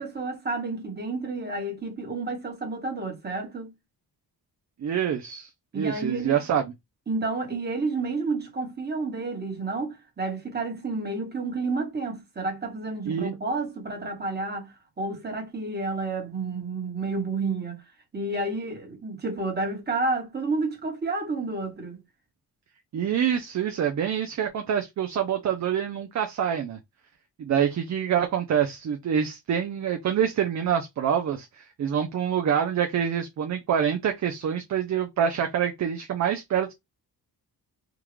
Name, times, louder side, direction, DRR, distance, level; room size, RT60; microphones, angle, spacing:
voice 1, 0.0-3.7 5.7-6.4 7.1-17.8 18.1-22.0, right 3 dB, 25° right, 1.3 m, -30 dB
voice 2, 4.8-6.7 13.1-13.3 22.9-26.8 27.4-36.7, right 8 dB, 45° right, 0.5 m, -26 dB
3.6 x 2.3 x 3.1 m
wide cardioid pair, 130°, 39 cm